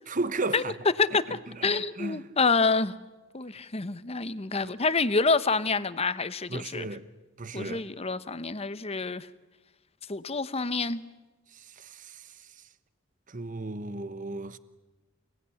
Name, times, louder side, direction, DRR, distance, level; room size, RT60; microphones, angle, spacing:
voice 1, 0.1-0.7 1.6-2.2 6.5-7.0 7.4-7.8 11.5-12.3 13.3-14.6, right 2 dB, 40° right, 1.0 m, -34 dB
voice 2, 1.0-2.9 3.3-6.9 7.5-9.3 10.1-11.0, left 4 dB, 30° left, 1.0 m, -27 dB
29.5 x 19.0 x 9.9 m
head